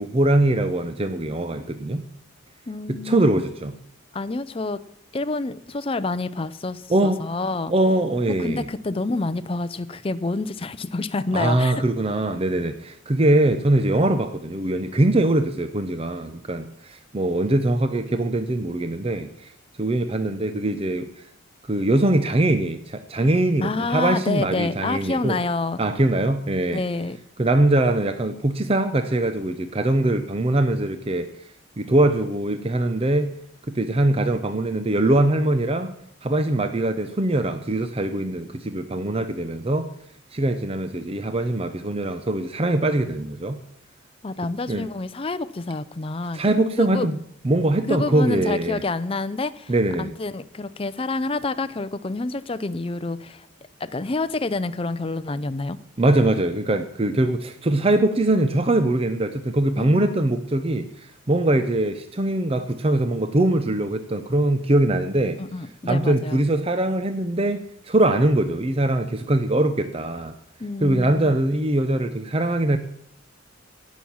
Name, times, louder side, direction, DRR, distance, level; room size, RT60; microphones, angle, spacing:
voice 1, 0.0-2.0 2.9-3.7 6.9-7.3 7.7-8.6 11.3-19.5 19.8-21.3 21.6-25.4 25.8-26.8 27.4-31.3 31.8-33.3 33.7-35.9 36.2-39.9 40.3-43.6 44.7-44.9 46.3-47.2 47.4-48.8 49.7-50.1 56.0-65.4 65.9-70.3 70.8-72.8, right 1 dB, 30° right, 9 dB, 0.6 m, -22 dB
voice 2, 2.7-3.2 4.1-4.8 5.1-7.7 8.4-11.7 23.6-25.8 26.7-27.2 44.2-46.4 46.8-47.1 47.9-49.7 50.0-53.5 53.8-55.8 59.8-60.2 65.4-66.4 70.6-71.3, left 3 dB, 25° left, 13 dB, 0.5 m, -28 dB
17.5 x 6.3 x 7.1 m, 0.71 s
head